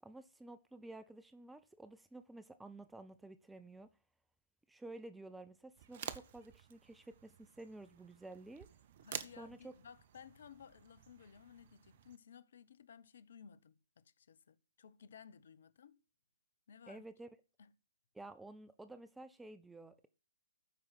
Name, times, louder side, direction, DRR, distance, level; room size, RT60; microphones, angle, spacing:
voice 1, 0.0-3.9 4.7-8.7 9.4-9.7 16.9-17.3 18.1-20.1, right 2 dB, 5° right, 0.5 m, -52 dB
sound 1, 5.8-12.2, right 9 dB, 40° right, 0.7 m, -51 dB
voice 2, 9.0-16.0 16.7-17.0 17.6-17.7, left 7 dB, 50° left, 0.7 m, -58 dB
12.5 x 4.8 x 5.6 m
figure-of-eight pair, 130°, 0 cm